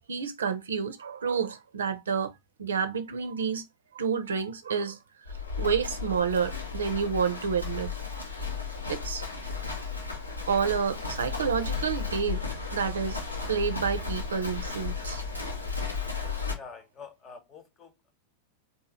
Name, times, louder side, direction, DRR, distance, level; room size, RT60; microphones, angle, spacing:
voice 1, 0.1-2.3 2.6-3.6 3.9-5.0 5.6-7.9 8.9-9.2 10.5-13.2 13.5-15.2, right 6 dB, 70° right, 0.6 m, -29 dB
Livestock farm animals working animals, 5.2-16.5, left 5 dB, 85° left, 1.0 m, -34 dB
voice 2, 16.5-18.1, left 5 dB, 30° left, 0.9 m, -47 dB
3.7 x 2.7 x 4.1 m
figure-of-eight pair, 90°, 0 cm